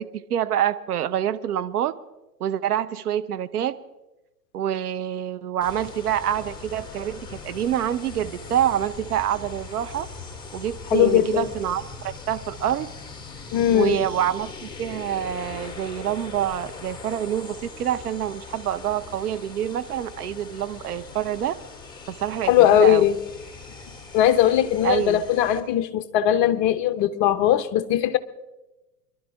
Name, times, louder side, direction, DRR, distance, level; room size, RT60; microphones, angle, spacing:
voice 1, 0.0-1.9 2.4-3.8 4.5-10.1 10.5-12.9 13.7-21.5 22.1-23.1 24.8-25.2, right 10 dB, 65° right, 0.9 m, -26 dB
sound 1, 5.6-25.6, left 4 dB, 10° left, 2.0 m, -40 dB
voice 2, 10.9-11.4 13.5-14.0 22.5-23.2 24.1-28.2, left 11 dB, 30° left, 0.8 m, -19 dB
24.5 x 12.0 x 3.5 m
hypercardioid pair, 115°, 49 cm